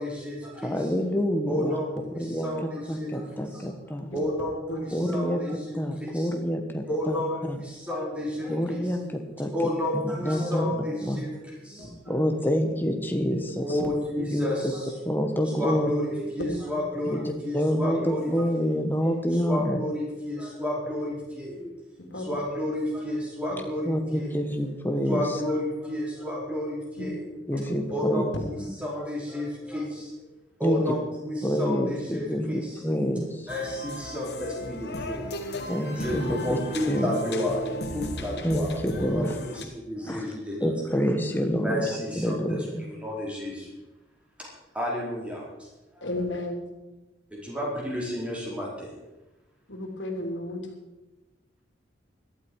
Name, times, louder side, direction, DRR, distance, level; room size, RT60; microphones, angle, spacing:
voice 1, 0.0-0.9 1.5-3.7 4.1-6.3 6.9-8.9 9.5-12.1 13.6-15.0 15.6-18.7 19.0-21.7 22.2-24.3 25.1-27.3 27.9-30.3 30.6-32.8 33.5-35.3 35.9-41.0 41.6-43.8 44.4-44.5 44.7-46.1 47.3-48.9, left 1 dB, 5° right, -4 dB, 4.4 m, -32 dB
voice 2, 0.6-1.8 2.2-4.1 4.9-5.4 5.7-7.2 7.5-7.6 8.5-9.5 9.9-11.2 12.1-13.9 14.3-14.5 15.0-15.9 17.0-17.2 17.5-18.0 18.3-19.8 23.8-25.3 27.5-28.2 30.6-30.8 31.4-33.5 35.7-36.6 36.9-37.1 38.4-39.4 40.0-40.3 40.6-41.8 42.2-42.6, equal, 10° left, 4 dB, 1.4 m, -27 dB
voice 3, 11.8-12.2 13.7-13.8 14.2-14.3 16.4-16.6 22.0-22.3 27.0-27.1 27.5-27.6 27.9-28.0 28.6-28.7 46.0-46.7 49.7-50.7, left 1 dB, 90° left, 2 dB, 3.1 m, -34 dB
sound 1, 33.5-39.6, equal, 60° left, 1.6 m, -35 dB
17.0 x 12.5 x 4.8 m, 1.0 s
head